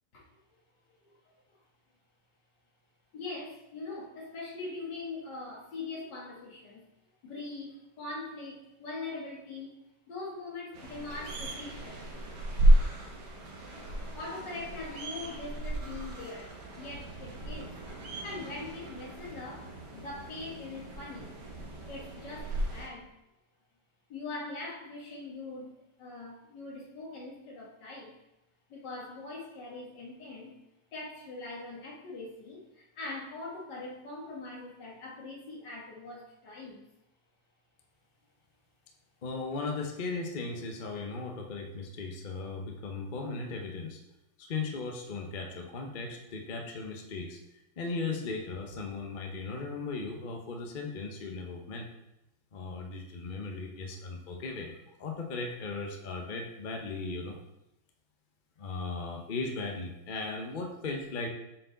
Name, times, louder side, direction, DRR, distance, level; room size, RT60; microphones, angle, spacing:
voice 1, 0.1-0.6 1.1-1.6 3.1-6.9 7.2-12.1 14.1-21.3 21.9-23.1 24.1-28.1 28.7-30.5 30.9-36.8, left 3 dB, 70° left, -3 dB, 2.2 m, -42 dB
sound 1, 10.7-22.9, right 1 dB, 65° right, 1.8 m, -32 dB
voice 2, 39.2-44.0 44.4-47.4 47.8-51.9 52.5-57.4 58.6-61.3, left 3 dB, 45° left, 2 dB, 0.6 m, -37 dB
7.7 x 4.6 x 3.9 m, 0.89 s
omnidirectional pair, 2.0 m